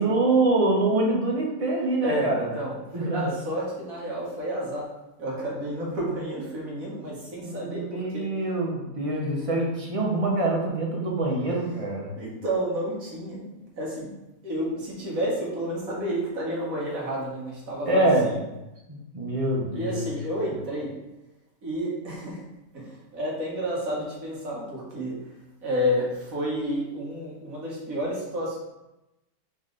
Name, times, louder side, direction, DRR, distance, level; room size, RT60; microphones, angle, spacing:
voice 1, 0.0-2.5 2.9-3.3 7.4-12.1 17.9-18.3 18.9-20.1, right 2 dB, 30° right, -3 dB, 0.6 m, -25 dB
voice 2, 2.0-4.9 5.2-8.3 12.2-14.1 14.4-18.4 19.7-20.9 21.6-22.4 22.7-25.2 25.6-28.6, equal, 65° right, -4 dB, 1.6 m, -30 dB
4.0 x 3.1 x 3.8 m, 0.97 s
omnidirectional pair, 1.6 m